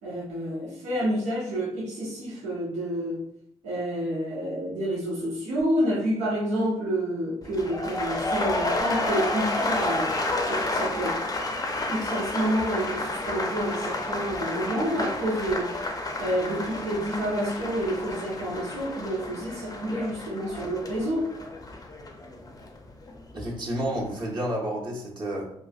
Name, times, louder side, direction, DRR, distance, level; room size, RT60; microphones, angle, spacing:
voice 1, 0.0-3.3 3.6-11.2 11.9-15.8 16.2-21.3, equal, 80° right, -7 dB, 0.8 m, -29 dB
sound 1, 7.4-23.5 23.8-24.2, left 2 dB, 30° left, 0.6 m, -31 dB
voice 2, 23.3-25.5, right 1 dB, 40° right, -3 dB, 1.0 m, -30 dB
3.0 x 2.3 x 2.3 m, 0.77 s
supercardioid pair, 60°, 12 cm